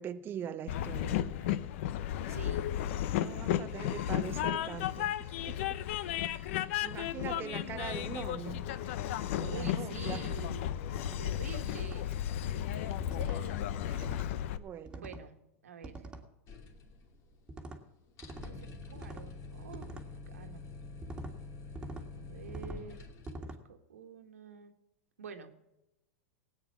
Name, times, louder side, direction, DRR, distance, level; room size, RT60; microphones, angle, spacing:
voice 1, 0.0-1.5 3.2-5.6 6.2-8.9 9.3-10.2 12.8-12.9 13.3-13.4 13.8-14.1 14.6-15.1, right 9 dB, 30° right, 0.6 m, -43 dB
Train, 0.7-14.6, left 11 dB, 65° left, 0.8 m, -34 dB
voice 2, 2.3-2.7 6.2-6.5 7.2-7.6 9.5-10.8 11.2-12.2 12.5-12.8 13.2-13.8 15.0-15.4 15.6-16.1 18.4-20.7 22.1-23.0 23.4-24.8 25.2-25.5, right 6 dB, 90° right, 1.7 m, -48 dB
sound 1, 9.4-9.7 10.2-10.5 10.9-11.2 11.7-12.0 13.0-13.4 13.9-14.3 14.9-15.3 15.8-16.3 17.5-17.8 18.2-18.5 19.0-19.3 19.7-20.1 21.0-21.3 21.8-22.1 22.5-22.8 23.3-23.6, right 2 dB, 10° right, 1.9 m, -45 dB
sound 2, 16.5-17.5 17.7-17.8 18.1-23.3, left 3 dB, 45° left, 2.6 m, -47 dB
17.5 x 9.0 x 5.9 m
hypercardioid pair, 115°, 8 cm